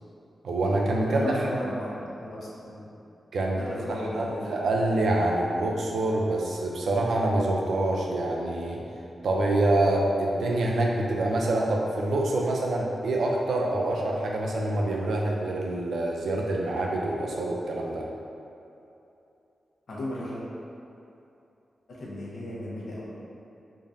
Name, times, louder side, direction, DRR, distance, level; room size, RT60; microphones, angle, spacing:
voice 1, 0.4-1.5 3.3-3.6 3.9-8.8 9.2-18.1, right 2 dB, 85° right, -1 dB, 0.6 m, -26 dB
voice 2, 1.0-2.9 3.5-4.7 19.9-20.5 21.9-23.1, left 1 dB, 65° left, -7 dB, 1.0 m, -35 dB
4.9 x 3.7 x 2.7 m, 2.8 s
wide cardioid pair, 160°, 0 cm